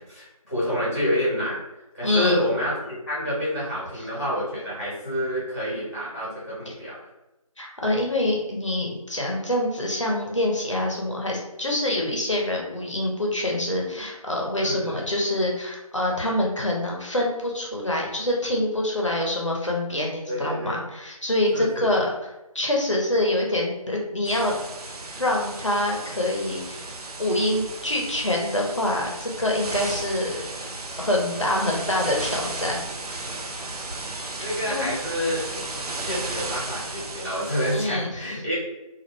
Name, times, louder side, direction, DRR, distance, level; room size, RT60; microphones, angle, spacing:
voice 1, 0.1-1.6 1.9-7.0 14.6-15.0 20.3-20.7 21.5-21.9 34.4-35.4 36.0-38.5, equal, 25° left, -8 dB, 1.0 m, -28 dB
voice 2, 2.0-2.4 6.7-6.8 7.6-22.1 22.5-24.5 25.1-30.3 31.0-33.3 34.4-34.9 37.7-38.1, left 1 dB, 55° left, -1 dB, 0.7 m, -26 dB
sound 1, 24.2-37.8, right 2 dB, 85° right, 0.5 m, -34 dB
2.4 x 2.1 x 3.1 m, 0.97 s
figure-of-eight pair, 175°, 19 cm